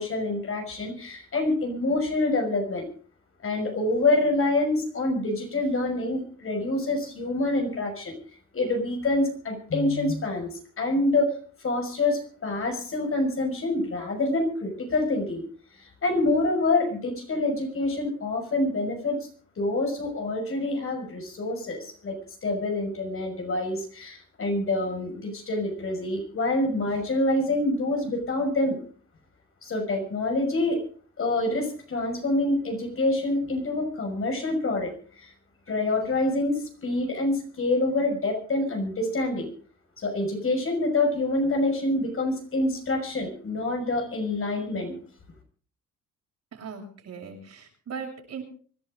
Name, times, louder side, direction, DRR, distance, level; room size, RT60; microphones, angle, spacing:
voice 1, 0.0-2.8 3.4-8.2 8.5-11.3 11.6-15.4 15.8-19.2 19.6-28.8 29.6-30.8 31.2-34.9 35.2-35.3 35.7-39.5 40.0-45.0, left 2 dB, 45° left, 4 dB, 5.9 m, -26 dB
voice 2, 46.5-48.4, right 6 dB, 60° right, 0 dB, 7.1 m, -39 dB
25.0 x 11.5 x 3.8 m, 0.42 s
cardioid pair, 90°, 30 cm